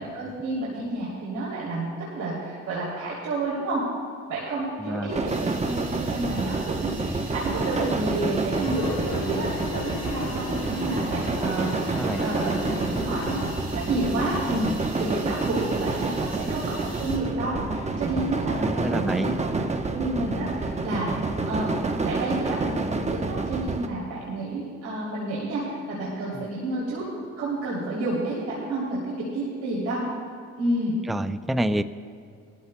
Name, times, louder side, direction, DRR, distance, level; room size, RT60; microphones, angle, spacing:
voice 1, 0.0-3.8 4.3-13.4 13.7-14.7 14.9-21.7 22.0-27.0 27.4-30.0 30.6-30.9, right 2 dB, 85° right, -6 dB, 3.0 m, -30 dB
voice 2, 4.8-5.1 11.9-12.2 18.6-19.3 26.3-26.4 31.1-31.8, right 1 dB, ahead, 12 dB, 0.4 m, -27 dB
sound 1, 5.1-23.9, right 3 dB, 20° right, 0.9 m, -28 dB
sound 2, 5.3-17.2, right 1 dB, 50° right, 3.5 m, -43 dB
sound 3, 8.5-13.5, left 5 dB, 80° left, 2.2 m, -35 dB
21.5 x 14.0 x 2.2 m, 2.4 s
cardioid pair, 90°, 30 cm